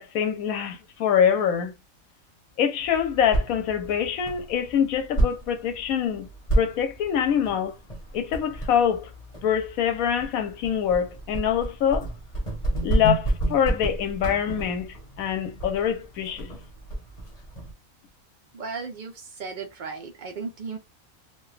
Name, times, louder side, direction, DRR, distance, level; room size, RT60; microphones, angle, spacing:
voice 1, 0.0-1.7 2.6-6.3 6.5-7.7 8.1-9.1 9.4-12.1 12.8-16.5, left 8 dB, 85° left, 1.1 m, -25 dB
sound 1, 2.8-17.7, right 1 dB, 30° left, 1.0 m, -31 dB
voice 2, 18.5-20.8, right 4 dB, 85° right, 0.4 m, -35 dB
2.9 x 2.2 x 3.2 m
omnidirectional pair, 1.5 m